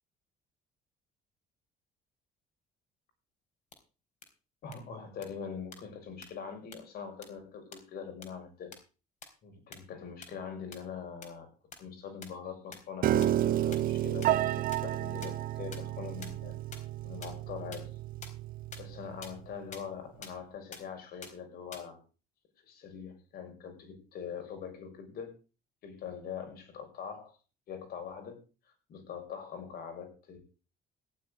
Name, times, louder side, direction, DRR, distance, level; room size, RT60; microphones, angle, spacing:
sound 1, 3.7-3.8 4.2-4.3 4.7-4.8 5.2-5.3 5.7-5.8 6.2-6.3 6.7-6.8 7.2-7.3 7.7-7.8 8.2-8.3 8.7-8.8 9.2-9.3 9.7-9.8 10.2-10.3 10.7-10.8 11.2-11.3 11.7-11.8 12.2-12.3 12.7-12.8 13.2-13.3 13.7-13.8 14.2-14.3 14.7-14.8 15.2-15.3 15.7-15.8 16.2-16.3 16.7-16.8 17.2-17.3 17.7-17.8 18.2-18.3 18.7-18.8 19.2-19.3 19.7-19.8 20.2-20.3 20.7-20.8 21.2-21.3 21.7-21.8, left 5 dB, 45° left, 4.2 m, -44 dB
voice 1, 4.6-8.7 9.4-11.5 11.8-16.6 17.0-17.9 18.8-22.0 22.6-25.3 25.8-27.3 27.7-28.4 28.9-30.4, left 7 dB, 65° left, 5 dB, 6.1 m, -43 dB
Piano, 13.0-19.2, right 13 dB, 55° right, 0.6 m, -31 dB
15.0 x 5.4 x 9.8 m, 0.35 s
cardioid pair, 110°, 17 cm